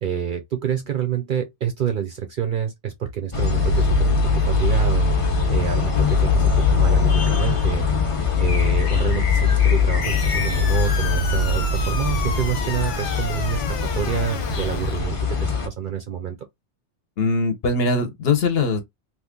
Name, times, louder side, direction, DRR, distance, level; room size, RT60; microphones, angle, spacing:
voice 1, 0.0-5.2 5.5-7.9 8.4-16.4, right 9 dB, 60° right, 0.5 m, -27 dB
sound 1, 3.3-15.7, left 4 dB, 35° left, 0.6 m, -21 dB
sound 2, 10.0-15.0, left 7 dB, 85° left, 1.0 m, -32 dB
voice 2, 17.2-18.8, left 3 dB, 60° left, 0.9 m, -21 dB
2.8 x 2.4 x 3.6 m
omnidirectional pair, 1.2 m